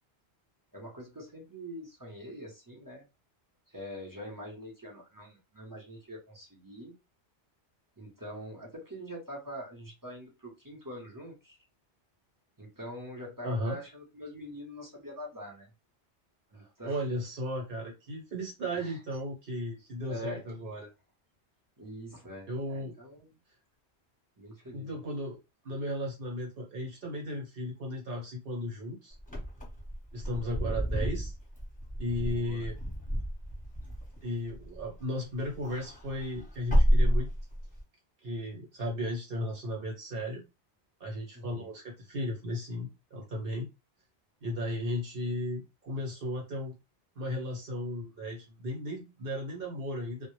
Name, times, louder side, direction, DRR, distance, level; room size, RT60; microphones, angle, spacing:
voice 1, 0.7-3.1 3.7-6.9 8.0-11.6 12.6-15.7 16.5-17.0 18.7-19.0 20.1-20.4 21.8-23.3 24.4-24.9 32.3-32.6 41.3-41.7, equal, 25° right, 0.6 m, -44 dB
voice 2, 13.4-13.8 16.5-20.9 22.5-23.0 24.7-25.4 25.6-29.1 30.1-31.3 32.0-32.8 34.2-37.3 38.2-40.4 41.0-43.7 44.4-46.7 47.1-50.3, left 1 dB, 60° right, 1.0 m, -35 dB
Wind / Car, 29.2-35.0 35.4-37.8, equal, 10° left, 0.8 m, -30 dB
2.1 x 2.0 x 3.0 m
omnidirectional pair, 1.1 m